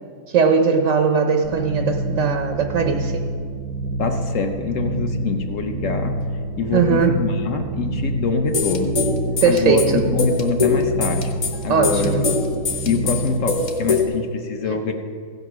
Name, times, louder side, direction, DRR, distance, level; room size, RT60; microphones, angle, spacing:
voice 1, 0.3-3.2 6.7-7.2 9.4-10.0 11.7-12.2 14.7-14.8, right 5 dB, 70° right, 4 dB, 0.7 m, -19 dB
sound 1, 1.4-13.6, right 2 dB, 85° right, 1.3 m, -27 dB
voice 2, 4.0-6.2 6.6-9.0 9.5-11.4 11.6-12.4 12.8-14.9, left 4 dB, 70° left, 6 dB, 0.7 m, -24 dB
sound 2, 8.5-14.0, left 4 dB, 50° left, 1.2 m, -23 dB
16.0 x 5.3 x 6.0 m, 2.2 s
omnidirectional pair, 2.0 m